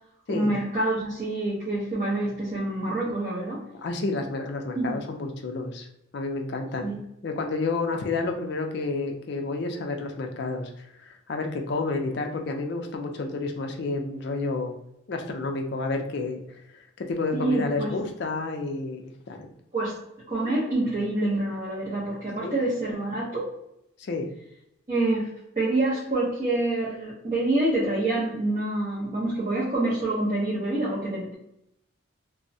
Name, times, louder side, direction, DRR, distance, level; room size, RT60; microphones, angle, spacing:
voice 1, 0.3-3.6 4.7-5.0 6.8-7.0 17.3-17.9 19.7-20.0 20.3-23.5 24.9-25.3 25.6-31.4, right 2 dB, 35° right, -8 dB, 0.7 m, -27 dB
voice 2, 3.7-5.9 6.1-6.9 7.2-14.8 15.1-19.5 22.4-22.6 24.0-24.3, left 3 dB, 50° left, 3 dB, 0.4 m, -30 dB
2.6 x 2.1 x 2.6 m, 0.79 s
head